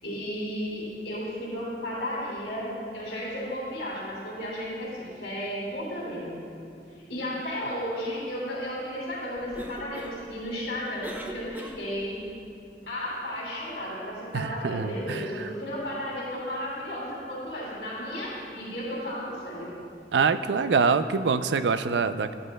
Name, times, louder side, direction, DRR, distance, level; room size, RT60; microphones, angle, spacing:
voice 1, 0.0-6.4 7.1-12.2 12.8-19.7, equal, 80° left, -6 dB, 3.0 m, -34 dB
Cough, 9.3-12.2, right 1 dB, 10° right, 0.6 m, -43 dB
voice 2, 14.3-15.5 20.1-22.3, right 5 dB, 75° right, 11 dB, 0.4 m, -25 dB
17.0 x 12.0 x 2.2 m, 2.5 s
head